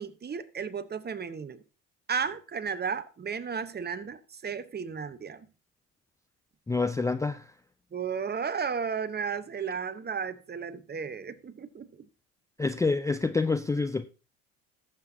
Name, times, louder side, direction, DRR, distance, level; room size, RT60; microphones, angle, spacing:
voice 1, 0.0-1.6 2.1-5.4 7.9-11.9, right 6 dB, 25° right, 1.0 m, -34 dB
voice 2, 6.7-7.4 12.6-14.1, left 3 dB, 10° left, 0.5 m, -27 dB
17.5 x 7.7 x 2.8 m
hypercardioid pair, 65°, 39 cm